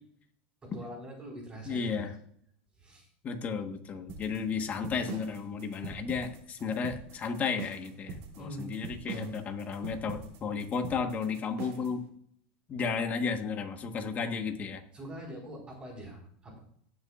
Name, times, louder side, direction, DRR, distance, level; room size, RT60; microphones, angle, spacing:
voice 1, 0.6-2.1 2.8-3.1 8.4-8.7 9.1-9.3 14.9-16.6, right 1 dB, 20° right, -1 dB, 4.7 m, -43 dB
voice 2, 1.6-2.1 3.2-12.0 12.7-14.8, left 5 dB, 30° left, 5 dB, 1.4 m, -33 dB
sound 1, 4.1-12.0, right 5 dB, 60° right, 2.8 m, -43 dB
18.5 x 7.1 x 2.5 m, 0.67 s
supercardioid pair, 125°, 5 cm